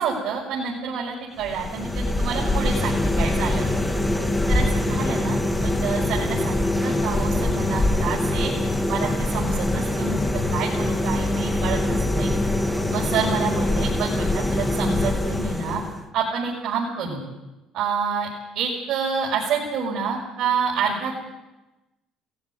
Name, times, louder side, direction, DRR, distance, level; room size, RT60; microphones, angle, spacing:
voice 1, 0.0-3.7 4.5-8.5 8.9-12.3 12.9-15.8 16.1-17.2 17.7-18.3 18.5-21.1, right 6 dB, 60° right, -4 dB, 6.3 m, -28 dB
sound 1, 1.4-16.1, left 1 dB, 10° left, 1.7 m, -23 dB
19.5 x 15.5 x 9.8 m, 1.0 s
cardioid pair, 125°, 0 cm